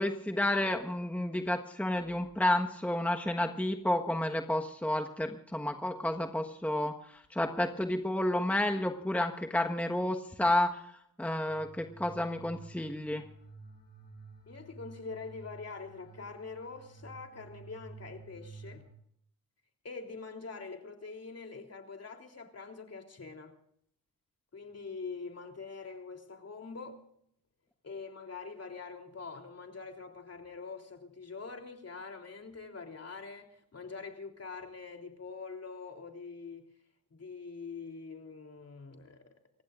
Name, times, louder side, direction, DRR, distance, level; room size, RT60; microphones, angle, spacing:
voice 1, 0.0-10.8 11.2-13.2, left 1 dB, 5° left, 4 dB, 1.4 m, -31 dB
sound 1, 11.5-18.9, right 3 dB, 60° left, 5.8 m, -52 dB
voice 2, 14.5-18.8 19.8-23.5 24.5-27.0 27.8-36.7 37.1-39.3, left 4 dB, 45° left, 3 dB, 3.4 m, -44 dB
29.5 x 15.5 x 2.5 m, 0.69 s
supercardioid pair, 55°, 35 cm